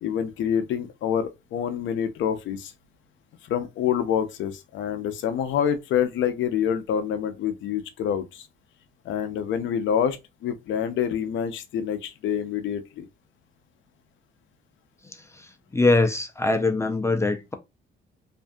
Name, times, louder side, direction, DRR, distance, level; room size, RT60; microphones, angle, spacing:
voice 1, 0.0-2.7 3.4-8.5 9.0-10.2 10.4-13.1, left 8 dB, 75° left, 0.5 m, -27 dB
voice 2, 15.3-17.5, left 2 dB, 15° left, 0.4 m, -23 dB
2.5 x 2.5 x 2.2 m
cardioid pair, 90°, 20 cm